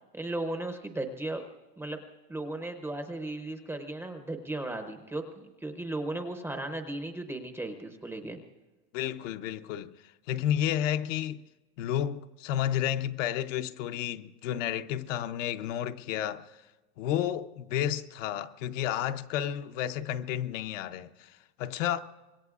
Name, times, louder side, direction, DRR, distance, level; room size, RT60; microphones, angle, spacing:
voice 1, 0.1-1.4 1.8-2.0 2.3-8.4, right 2 dB, 5° right, 0.6 m, -36 dB
voice 2, 8.9-9.9 10.3-11.4 11.8-16.6 17.0-22.0, left 11 dB, 55° left, 0.7 m, -31 dB
25.5 x 21.0 x 2.4 m
supercardioid pair, 150°, 47 cm